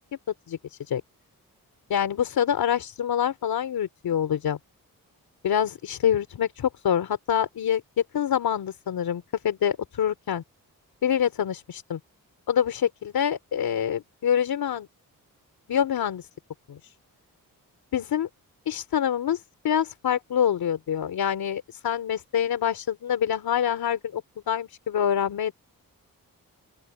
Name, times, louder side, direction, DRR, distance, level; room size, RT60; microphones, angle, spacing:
voice 1, 0.5-1.0 1.9-4.6 5.4-7.8 8.1-10.4 11.0-12.0 12.5-14.9 15.7-16.3 16.7-16.9 17.9-18.3 18.7-25.5, left 9 dB, 85° left, 3.2 m, -26 dB
open air
wide cardioid pair, 125°, 35 cm